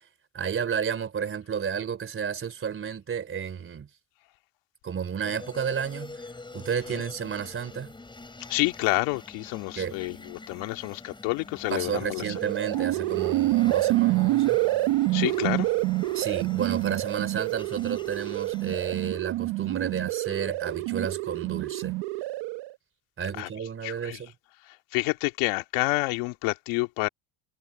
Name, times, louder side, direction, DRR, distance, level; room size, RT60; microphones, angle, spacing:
voice 1, 0.3-3.9 4.8-7.9 9.8-10.0 11.7-14.6 16.1-22.0 23.2-24.3, right 7 dB, 25° right, 3.7 m, -32 dB
sound 1, 5.2-19.1, left 3 dB, 10° left, 7.0 m, -46 dB
voice 2, 8.5-12.2 15.1-15.7 23.4-23.5 23.8-24.2 24.7-27.1, left 23 dB, 70° left, 2.2 m, -28 dB
sound 2, 12.2-22.7, right 19 dB, 60° right, 1.3 m, -27 dB
cardioid pair, 150°, 49 cm